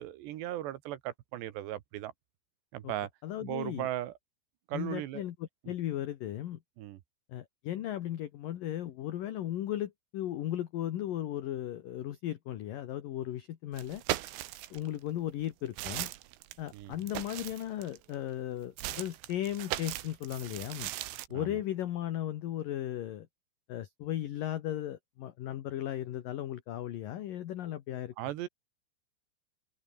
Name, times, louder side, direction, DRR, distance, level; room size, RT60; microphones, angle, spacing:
voice 1, 0.0-2.1 2.7-3.1 3.4-4.1 4.7-5.2 5.6-5.7 6.8-7.0 16.7-17.0 21.3-21.6 28.2-28.5, right 13 dB, 70° right, 3.1 m, -37 dB
voice 2, 3.2-3.9 4.7-6.6 7.3-14.0 14.7-16.1 16.6-20.9 21.3-23.3 23.7-28.1, left 12 dB, 65° left, 2.2 m, -36 dB
sound 1, 13.7-14.9 15.4-18.2 18.8-21.3, right 16 dB, 85° right, 3.9 m, -38 dB
omnidirectional pair, 5.7 m